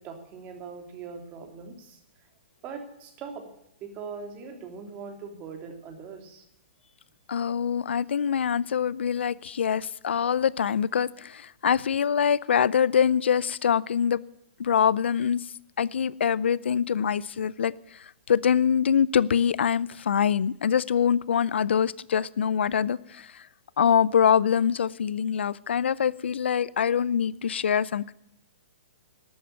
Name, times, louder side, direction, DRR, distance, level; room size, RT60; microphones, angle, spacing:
voice 1, 0.0-2.0 2.6-3.5 3.8-6.4, right 5 dB, 25° right, 2.8 m, -41 dB
voice 2, 7.3-14.2 14.6-15.5 15.8-23.5 23.8-28.1, left 8 dB, 80° left, 0.5 m, -24 dB
12.5 x 8.6 x 8.9 m
hypercardioid pair, 145°, 6 cm